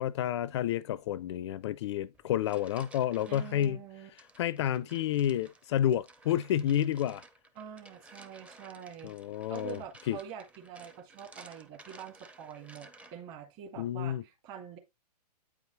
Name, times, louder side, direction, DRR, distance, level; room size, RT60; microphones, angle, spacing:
voice 1, 0.0-3.8 4.4-7.2 9.0-10.2 13.8-14.2, left 11 dB, 45° left, 0.4 m, -30 dB
sound 1, 2.1-3.7 4.2-13.4, right 2 dB, 5° right, 0.5 m, -55 dB
voice 2, 3.3-4.1 7.6-9.2 9.5-14.8, right 8 dB, 35° right, 1.9 m, -45 dB
8.6 x 4.8 x 3.1 m
figure-of-eight pair, 120°, 21 cm